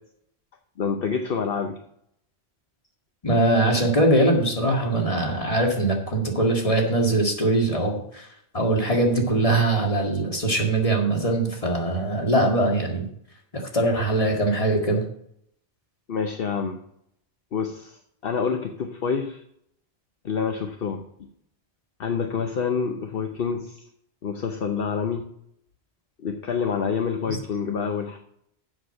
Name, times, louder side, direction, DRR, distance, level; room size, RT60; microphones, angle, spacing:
voice 1, 0.8-1.8 16.1-16.8 17.5-19.4 20.2-21.0 22.0-23.9 24.2-25.2 26.2-28.2, left 6 dB, 60° left, 5 dB, 1.0 m, -27 dB
voice 2, 3.2-8.3 8.5-13.1 13.5-15.0 27.3-27.4, right 1 dB, 30° left, 1 dB, 2.1 m, -22 dB
7.8 x 6.3 x 7.5 m, 0.71 s
omnidirectional pair, 1.1 m